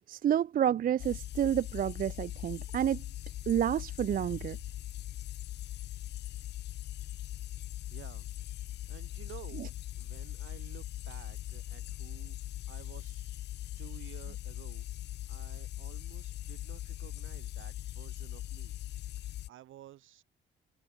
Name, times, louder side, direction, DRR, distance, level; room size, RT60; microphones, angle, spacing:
voice 1, 0.1-3.0 3.5-4.6, right 10 dB, 45° right, 0.4 m, -29 dB
sound 1, 1.0-19.5, left 14 dB, 60° left, 0.4 m, -41 dB
voice 2, 7.9-8.3 8.9-9.7 10.0-12.4 12.7-13.4 13.8-14.9 15.3-18.8 19.5-20.2, right 13 dB, 80° right, 3.9 m, -53 dB
cardioid pair, 90°, 20 cm